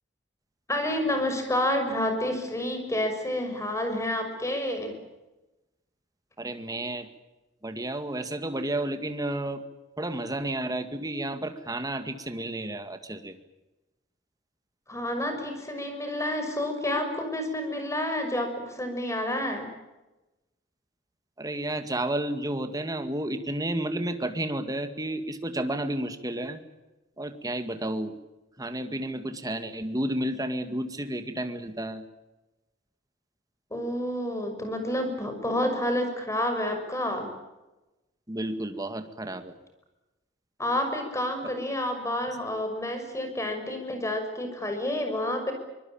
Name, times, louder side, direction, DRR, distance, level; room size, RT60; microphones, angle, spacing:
voice 1, 0.7-4.9 14.9-19.7 33.7-37.3 40.6-45.5, left 1 dB, 15° left, 5 dB, 6.2 m, -29 dB
voice 2, 6.4-7.1 7.6-9.6 10.0-13.4 21.4-26.6 27.2-28.1 28.6-32.0 38.3-39.5, right 1 dB, 20° right, 8 dB, 2.1 m, -31 dB
25.0 x 21.0 x 8.9 m, 1.0 s
head